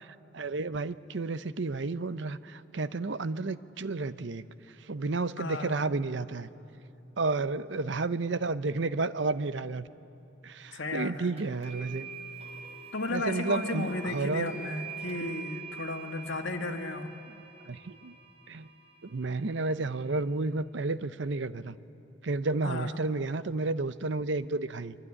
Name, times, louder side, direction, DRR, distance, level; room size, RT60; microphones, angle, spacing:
voice 1, 0.0-4.4 4.8-6.5 7.2-9.9 10.4-12.1 13.1-14.5 17.7-18.2 18.5-18.7 19.0-21.7 22.2-25.0, right 3 dB, 65° right, 14 dB, 0.7 m, -31 dB
voice 2, 5.4-5.8 10.7-11.3 12.9-17.1 22.6-23.0, left 2 dB, 70° left, 5 dB, 1.7 m, -34 dB
sound 1, 11.4-20.2, right 5 dB, 30° right, 3.4 m, -45 dB
24.5 x 23.5 x 9.9 m, 2.8 s
head